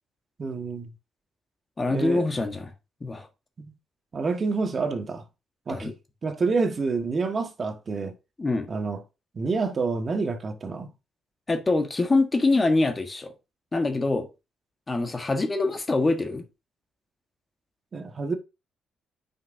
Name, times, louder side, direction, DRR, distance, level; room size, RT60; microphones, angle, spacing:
voice 1, 0.4-0.9 1.9-2.3 3.6-3.7 4.1-5.2 5.7-5.9 6.2-8.1 8.7-9.0 9.3-10.9 17.9-18.4, right 4 dB, 40° right, 1.4 m, -28 dB
voice 2, 1.8-2.7 3.0-3.3 5.7-5.9 8.4-8.7 11.5-13.3 13.7-14.3 14.9-16.4, left 2 dB, 25° left, 1.4 m, -24 dB
9.3 x 5.8 x 2.7 m
cardioid pair, 90°, 0 cm